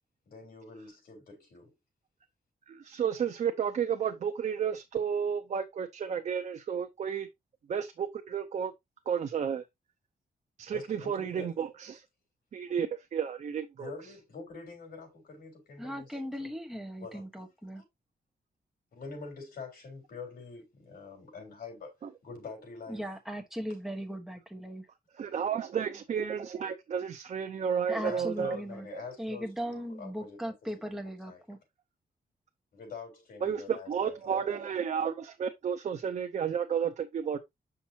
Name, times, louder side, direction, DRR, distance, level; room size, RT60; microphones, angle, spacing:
voice 1, 0.3-1.7 10.7-11.5 13.8-16.1 16.4-16.5 17.0-17.2 17.7-17.8 18.9-23.1 28.0-30.9 31.3-31.4 32.7-34.4, left 4 dB, 85° left, 3.9 m, -45 dB
voice 2, 2.7-7.3 7.7-8.7 9.1-9.6 10.6-12.0 12.5-13.9 25.1-28.6 28.9-29.0 33.4-37.4, right 7 dB, 50° right, 0.6 m, -32 dB
voice 3, 15.8-17.8 22.9-24.9 27.9-28.9 29.2-31.6, equal, ahead, 1.1 m, -38 dB
7.1 x 5.9 x 2.8 m
wide cardioid pair, 175°, 16 cm